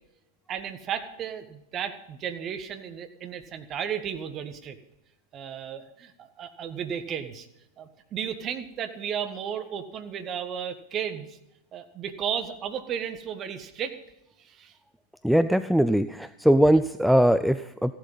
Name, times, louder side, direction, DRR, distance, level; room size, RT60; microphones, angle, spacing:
voice 1, 0.5-4.8 5.3-7.5 7.8-11.4 11.7-14.0 14.4-14.8, right 8 dB, 30° right, 8 dB, 1.5 m, -34 dB
voice 2, 15.2-17.9, equal, ahead, 12 dB, 0.4 m, -21 dB
15.0 x 11.5 x 5.5 m, 0.88 s
figure-of-eight pair, 90°, 0 cm